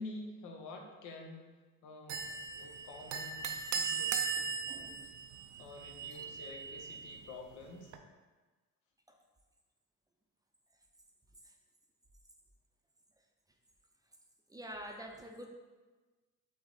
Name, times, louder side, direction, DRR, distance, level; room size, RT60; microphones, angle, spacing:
voice 1, 0.0-1.5 1.8-5.0 5.6-7.9, left 2 dB, 85° left, 2 dB, 0.7 m, -49 dB
sound 1, 2.1-8.0, right 5 dB, 70° right, 0.5 m, -38 dB
voice 2, 14.5-15.5, equal, 10° right, 2 dB, 0.5 m, -47 dB
6.1 x 2.0 x 3.9 m, 1.3 s
cardioid pair, 90°, 30 cm